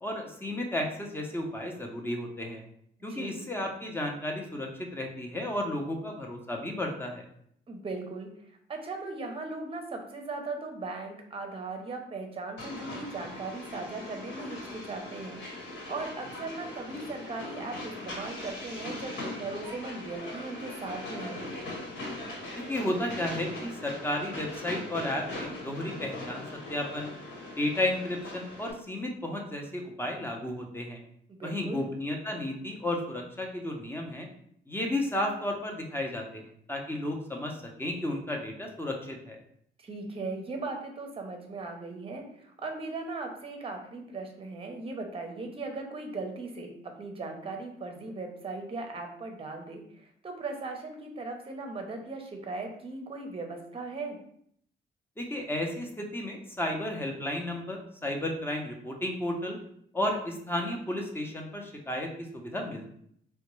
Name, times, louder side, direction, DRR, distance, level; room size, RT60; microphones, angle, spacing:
voice 1, 0.0-2.6 3.0-7.2 22.5-27.1 27.6-31.0 31.4-34.3 34.7-36.4 36.7-39.4 55.2-59.6 59.9-62.1 62.3-62.9, left 1 dB, 10° left, 1 dB, 0.7 m, -33 dB
voice 2, 3.1-3.4 7.7-8.3 8.7-21.5 31.3-31.9 39.8-54.2, right 3 dB, 30° right, 4 dB, 0.7 m, -38 dB
Train, 12.6-28.7, left 1 dB, 70° left, 1.3 m, -40 dB
3.6 x 2.2 x 3.1 m, 0.69 s
cardioid pair, 90°, 20 cm